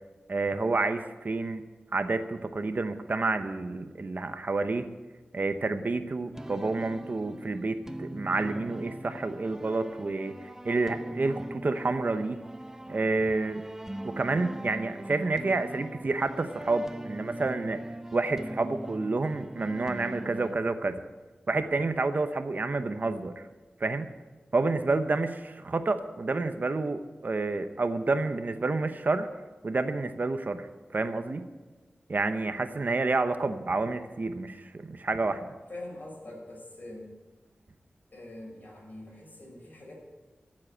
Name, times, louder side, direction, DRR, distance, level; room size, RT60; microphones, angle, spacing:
voice 1, 0.3-1.6 1.9-4.9 5.3-12.4 12.9-13.6 14.0-17.8 18.1-21.0 21.5-23.3 23.8-24.1 24.5-29.3 29.6-30.7 30.9-31.5 32.1-35.5, right 3 dB, 50° right, 9 dB, 0.9 m, -29 dB
sound 1, 6.3-20.5, right 1 dB, 10° right, 0.7 m, -41 dB
voice 2, 35.7-37.1 38.1-39.9, left 1 dB, 50° left, -1 dB, 5.8 m, -44 dB
14.0 x 7.6 x 8.8 m, 1.2 s
wide cardioid pair, 75°, 4 cm